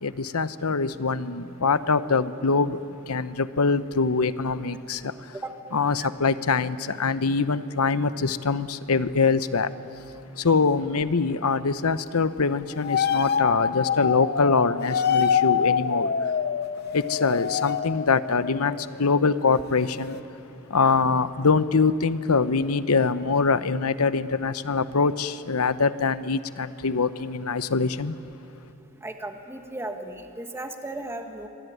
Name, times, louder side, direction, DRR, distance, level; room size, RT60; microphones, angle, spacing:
voice 1, 0.0-5.3 5.7-9.7 10.4-16.3 16.9-20.2 20.7-28.2, left 4 dB, 75° left, 0.9 m, -24 dB
sound 1, 12.8-19.4 19.6-20.2, left 7 dB, 45° left, 0.7 m, -26 dB
voice 2, 29.0-31.5, right 2 dB, 10° right, 1.7 m, -35 dB
25.0 x 24.5 x 9.3 m
head